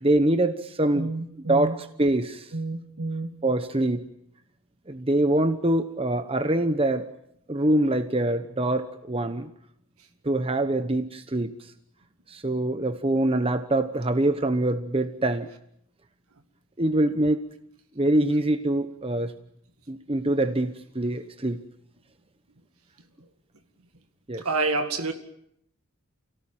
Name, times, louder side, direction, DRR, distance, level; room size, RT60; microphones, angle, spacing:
voice 1, 0.0-1.1 1.5-2.5 3.4-4.1 4.9-7.1 7.5-9.5 10.2-11.7 12.3-15.5 16.8-17.4 18.0-19.3 19.9-21.6 24.3-24.5, right 1 dB, 25° right, 10 dB, 1.0 m, -24 dB
voice 2, 0.9-1.7 2.5-3.3 24.4-25.1, right 3 dB, 80° right, 7 dB, 2.1 m, -28 dB
29.5 x 17.5 x 9.0 m, 0.75 s
head